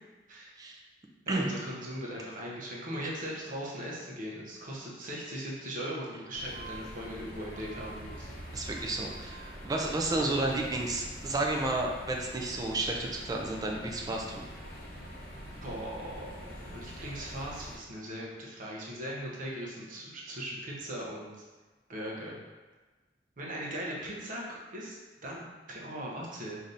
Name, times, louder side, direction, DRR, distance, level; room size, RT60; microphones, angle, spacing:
voice 1, 1.3-8.3 15.6-21.3 21.9-22.4 23.4-26.6, equal, 50° right, -4 dB, 0.7 m, -39 dB
sound 1, 6.3-17.8, equal, 55° left, 0.7 m, -45 dB
voice 2, 8.5-14.4, right 2 dB, 20° right, 0 dB, 0.3 m, -31 dB
3.4 x 2.6 x 2.5 m, 1.3 s
head